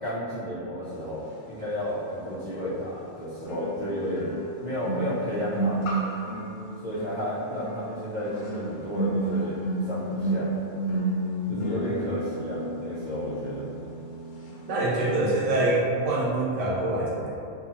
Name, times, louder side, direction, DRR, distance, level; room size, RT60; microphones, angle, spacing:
voice 1, 0.0-4.3 4.6-5.8 6.8-10.5 11.5-13.7, equal, 60° left, -12 dB, 0.5 m, -32 dB
sound 1, 2.1-2.2 3.5-14.6 14.8-15.1, right 2 dB, 75° left, 0.9 m, -31 dB
voice 2, 11.5-11.9 14.7-17.3, right 2 dB, 70° right, -5 dB, 0.9 m, -25 dB
2.8 x 2.4 x 2.6 m, 2.5 s
omnidirectional pair, 1.4 m